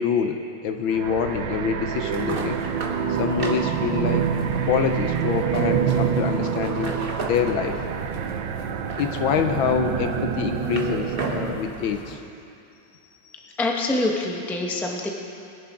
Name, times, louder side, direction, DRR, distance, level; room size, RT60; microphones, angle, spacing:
voice 1, 0.0-2.6 3.1-4.3 4.7-7.8 9.0-12.2, left 8 dB, 75° left, 6 dB, 1.4 m, -26 dB
sound 1, 0.9-11.7, right 7 dB, 70° right, 1.2 m, -27 dB
sound 2, 2.0-12.2, right 3 dB, 35° right, 1.0 m, -35 dB
voice 2, 13.6-15.1, left 2 dB, ahead, 0 dB, 0.5 m, -25 dB
22.0 x 10.5 x 3.7 m, 2.6 s
omnidirectional pair, 2.4 m